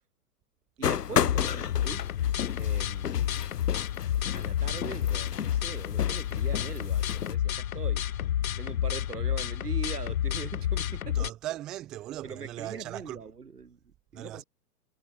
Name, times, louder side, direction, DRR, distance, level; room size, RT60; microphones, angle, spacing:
sound 1, 0.8-7.4, left 8 dB, 80° left, 0.9 m, -33 dB
voice 1, 0.8-2.1 2.6-3.4 4.3-8.1 8.6-11.3 12.2-14.4, right 5 dB, 75° right, 6.9 m, -42 dB
sound 2, 1.2-11.3, left 11 dB, 60° left, 1.1 m, -30 dB
voice 2, 11.1-13.2 14.1-14.4, right 14 dB, ahead, 0.3 m, -38 dB
figure-of-eight pair, 115°, 46 cm